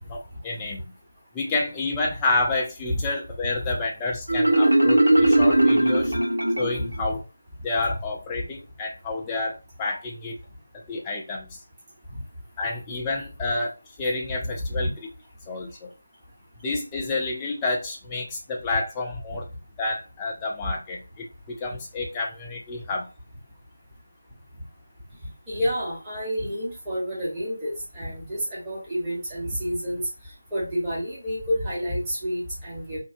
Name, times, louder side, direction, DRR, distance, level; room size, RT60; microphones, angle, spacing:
voice 1, 0.1-0.9 1.3-6.1 6.6-7.2 7.6-10.4 10.9-11.6 12.6-13.7 14.0-14.9 15.5-15.9 16.6-19.5 19.8-23.1, left 3 dB, 15° left, -1 dB, 0.4 m, -29 dB
Marimba xylophone, 4.3-7.0, right 1 dB, 70° right, 1.0 m, -19 dB
voice 2, 25.5-30.0 30.5-33.0, equal, 10° right, -9 dB, 1.0 m, -29 dB
2.6 x 2.2 x 2.5 m, 0.30 s
figure-of-eight pair, 165°, 0 cm